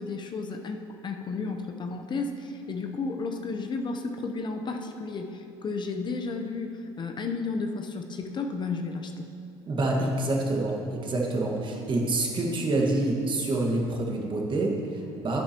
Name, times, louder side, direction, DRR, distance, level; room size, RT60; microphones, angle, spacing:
voice 1, 0.0-9.3, left 4 dB, 35° left, 4 dB, 0.7 m, -33 dB
voice 2, 9.7-15.4, right 2 dB, 40° right, 0 dB, 1.7 m, -27 dB
10.5 x 9.6 x 3.0 m, 2.6 s
supercardioid pair, 85°, 13 cm